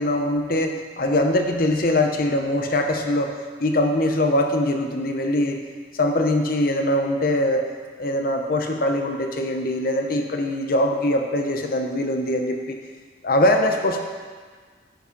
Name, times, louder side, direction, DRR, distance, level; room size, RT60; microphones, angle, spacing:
voice 1, 0.0-3.3 3.6-5.6 5.9-7.7 8.0-12.8 13.2-14.0, left 1 dB, 50° left, 4 dB, 0.7 m, -22 dB
11.5 x 4.9 x 5.2 m, 1.5 s
head